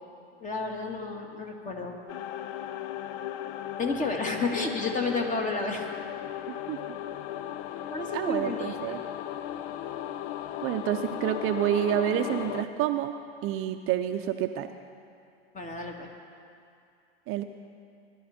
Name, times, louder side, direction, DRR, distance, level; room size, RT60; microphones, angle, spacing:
voice 1, 0.4-2.0 3.8-5.9 7.9-9.0 15.5-16.1, left 3 dB, 25° left, 2 dB, 2.0 m, -31 dB
sound 1, 2.1-12.6, left 11 dB, 55° left, 0.7 m, -36 dB
voice 2, 6.5-6.8 8.1-9.0 10.6-13.1 13.4-14.7 17.3-17.4, right 11 dB, 40° right, 7 dB, 0.7 m, -28 dB
20.5 x 12.0 x 4.3 m, 2.5 s
hypercardioid pair, 105°, 32 cm